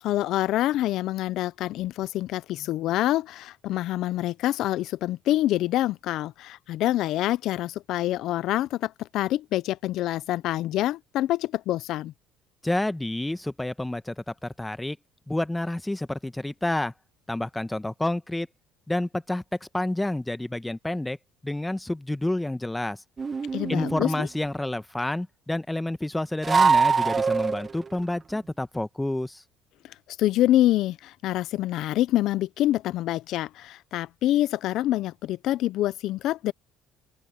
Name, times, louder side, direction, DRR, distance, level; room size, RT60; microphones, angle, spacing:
voice 1, 0.0-12.1 23.5-24.3 30.2-36.5, left 14 dB, 65° left, 0.8 m, -26 dB
voice 2, 12.6-15.0 15.3-16.9 17.3-18.5 18.9-19.4 19.7-21.2 21.4-23.0 23.7-29.4, left 1 dB, 10° left, 1.3 m, -29 dB
sound 1, 23.2-24.2 26.4-27.9, right 5 dB, 30° right, 0.6 m, -23 dB
open air
supercardioid pair, 75°, 0 cm